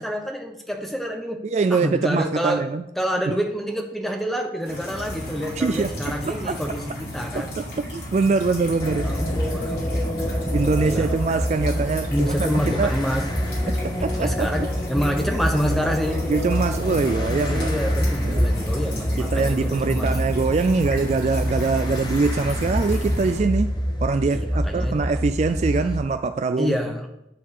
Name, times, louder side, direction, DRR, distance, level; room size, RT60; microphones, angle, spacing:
voice 1, 0.0-1.4 1.7-2.6 3.0-7.5 9.0-11.1 12.1-13.3 14.2-16.3 17.5-20.1 24.3-25.0 26.6-27.1, equal, ahead, 3 dB, 1.0 m, -27 dB
voice 2, 1.5-2.8 3.3-3.4 5.6-5.9 6.3-6.5 7.3-7.4 7.8-9.1 10.5-12.1 12.4-12.9 13.8-14.5 16.3-17.8 18.2-18.6 19.2-23.7 24.0-26.7, right 4 dB, 40° right, 9 dB, 0.3 m, -23 dB
sound 1, 4.7-23.4, equal, 70° left, 3.1 m, -33 dB
sound 2, 8.8-26.0, equal, 25° left, 1.0 m, -26 dB
11.0 x 3.8 x 6.6 m, 0.88 s
head